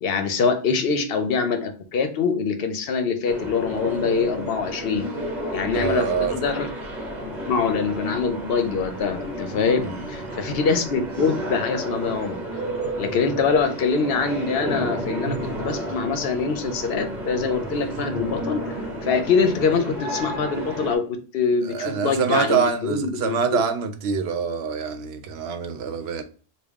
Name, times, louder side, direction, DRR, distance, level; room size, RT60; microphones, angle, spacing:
voice 1, 0.0-5.0 5.5-6.7 7.2-12.6 13.0-18.7 19.0-23.6, left 5 dB, 70° left, 0.8 m, -24 dB
sound 1, 3.2-20.9, right 1 dB, 45° right, 1.0 m, -32 dB
voice 2, 5.7-6.3 9.8-10.0 21.7-26.2, right 6 dB, 80° right, 0.9 m, -25 dB
3.6 x 2.3 x 3.4 m
omnidirectional pair, 1.0 m